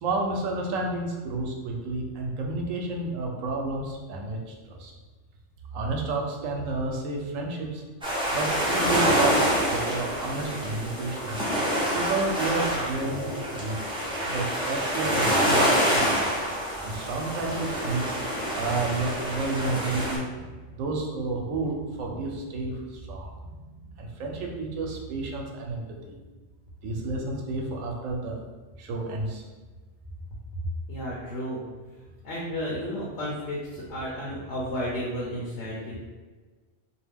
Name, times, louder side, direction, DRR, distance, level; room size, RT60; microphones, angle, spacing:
voice 1, 0.0-4.4 4.7-4.9 5.7-7.8 8.3-11.4 11.9-13.3 13.6-13.8 14.2-16.3 16.8-18.1 18.5-23.7 24.0-26.1 26.8-28.4 28.8-29.4, right 3 dB, 90° right, 1 dB, 1.0 m, -31 dB
sound 1, 8.0-20.2, equal, 10° right, 0.3 m, -27 dB
voice 2, 30.9-31.6 31.9-36.0, equal, 65° left, -6 dB, 0.9 m, -33 dB
2.4 x 2.1 x 3.4 m, 1.3 s
omnidirectional pair, 1.3 m